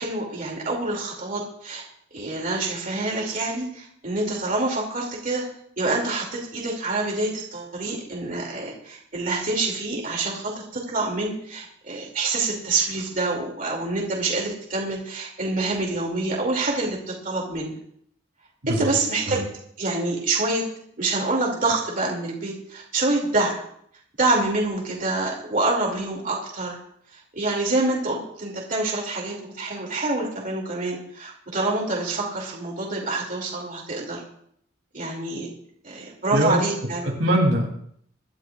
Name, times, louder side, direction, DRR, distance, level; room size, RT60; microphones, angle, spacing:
voice 1, 0.0-1.8 2.1-5.4 5.8-17.7 18.7-19.5 19.8-20.7 21.0-23.6 24.2-26.8 27.1-34.2 34.9-35.5 35.8-37.1, right 2 dB, 45° right, -2 dB, 2.6 m, -26 dB
voice 2, 36.3-36.6 37.0-37.7, right 1 dB, 75° right, 0 dB, 3.3 m, -22 dB
25.0 x 12.5 x 2.5 m, 0.67 s
head